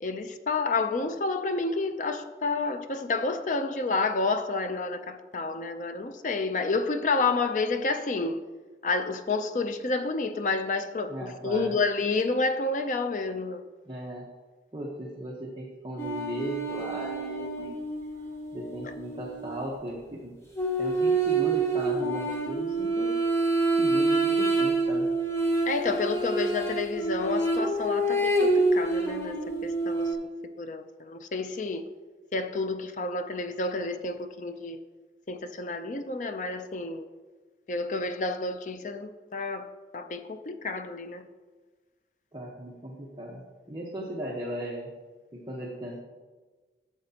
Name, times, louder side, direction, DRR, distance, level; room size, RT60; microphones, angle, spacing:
voice 1, 0.0-8.4 8.8-13.6 25.7-30.2 30.6-31.8 32.3-34.8 35.3-37.1 37.7-41.2, left 3 dB, 45° left, 0.4 m, -30 dB
voice 2, 11.1-11.7 13.9-14.3 14.7-17.8 18.5-20.3 20.8-23.1 23.8-25.1 42.3-43.4 43.7-44.9 45.3-46.0, right 1 dB, 25° right, 1.0 m, -37 dB
sound 1, 16.0-19.5 20.5-30.1, right 2 dB, 15° left, 1.0 m, -27 dB
12.0 x 7.7 x 2.9 m
head